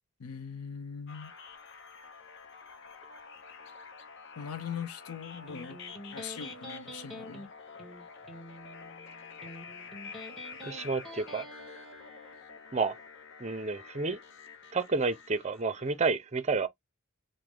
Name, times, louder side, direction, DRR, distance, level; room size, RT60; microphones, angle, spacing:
voice 1, 0.2-1.3 4.4-5.8 6.1-7.5, left 7 dB, 90° left, 0.6 m, -41 dB
sound 1, 1.1-16.1, left 5 dB, 55° left, 0.7 m, -48 dB
Electric guitar, 5.5-12.5, equal, ahead, 1.3 m, -47 dB
voice 2, 10.6-11.5 12.7-13.0 13.4-14.2 14.7-16.7, right 4 dB, 30° right, 0.5 m, -30 dB
4.8 x 2.1 x 3.7 m
head